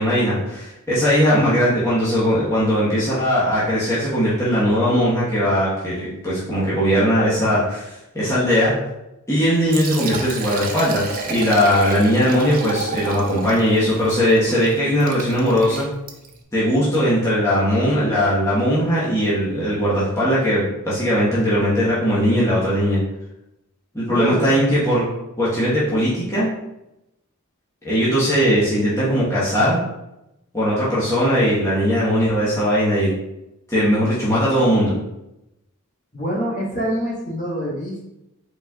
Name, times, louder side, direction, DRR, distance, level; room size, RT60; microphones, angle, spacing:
voice 1, 0.0-8.7 9.3-15.8 16.5-23.0 23.9-25.0 25.4-26.5 27.8-29.8 30.5-33.1 33.7-34.9, equal, 15° left, -10 dB, 1.2 m, -19 dB
Liquid, 9.5-16.4, right 4 dB, 40° right, 0.6 m, -32 dB
voice 2, 24.1-24.5 36.1-38.1, right 1 dB, 35° left, -6 dB, 1.5 m, -25 dB
5.3 x 4.1 x 2.4 m, 0.90 s
head